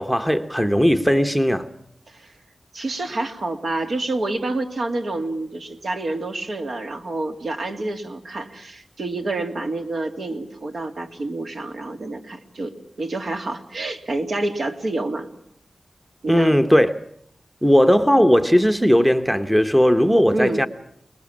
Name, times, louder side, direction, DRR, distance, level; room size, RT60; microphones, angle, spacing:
voice 1, 0.0-1.7 16.3-16.9 17.6-20.7, equal, 5° right, 0.9 m, -17 dB
voice 2, 2.7-15.3 16.2-16.6 20.3-20.6, right 2 dB, 65° right, 2.7 m, -28 dB
29.5 x 20.5 x 7.3 m
wide cardioid pair, 120°, 0 cm